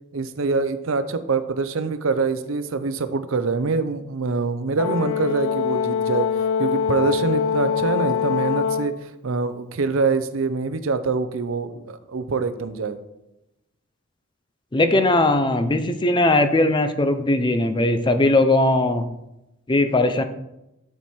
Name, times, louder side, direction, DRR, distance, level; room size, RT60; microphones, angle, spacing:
voice 1, 0.1-6.3 6.6-13.0, right 4 dB, 75° right, 11 dB, 0.6 m, -25 dB
Brass instrument, 4.8-9.0, left 7 dB, 85° left, 0.4 m, -23 dB
voice 2, 14.7-19.1 19.7-20.2, left 2 dB, 20° left, 9 dB, 0.5 m, -19 dB
10.5 x 4.6 x 4.4 m, 0.91 s
head